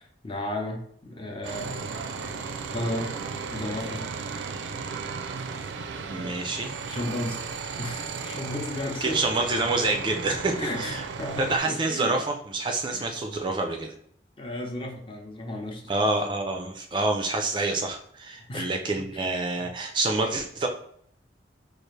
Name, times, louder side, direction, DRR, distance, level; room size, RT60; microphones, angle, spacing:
voice 1, 0.0-1.9 2.7-3.1 3.5-4.1 6.1-6.5 6.9-7.4 7.8-9.2 10.6-12.2 12.9-13.2 14.4-16.1 18.5-19.3 19.6-19.7, left 1 dB, 30° left, 2 dB, 0.7 m, -34 dB
sound 1, 1.4-11.6, right 5 dB, 90° right, 0.4 m, -35 dB
voice 2, 6.1-6.7 9.0-11.0 11.4-13.9 15.9-20.7, right 2 dB, 25° right, 4 dB, 0.4 m, -27 dB
4.6 x 2.4 x 3.2 m, 0.65 s
head